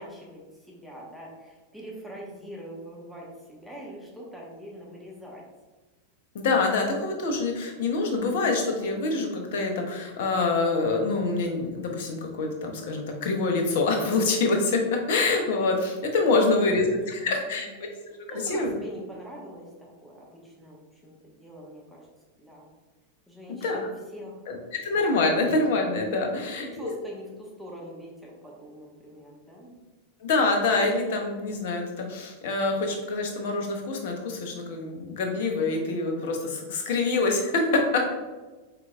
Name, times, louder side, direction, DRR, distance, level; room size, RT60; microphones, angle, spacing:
voice 1, 0.0-5.4 16.3-17.8 18.3-22.1 22.4-22.7 23.3-24.5 26.4-29.8, equal, ahead, -4 dB, 1.0 m, -43 dB
voice 2, 6.3-14.8 15.1-17.7 18.5-18.7 23.6-23.9 24.5-24.6 24.8-26.9 30.2-38.1, left 3 dB, 55° left, 2 dB, 0.7 m, -25 dB
4.5 x 3.8 x 2.3 m, 1.2 s
figure-of-eight pair, 90°, 0 cm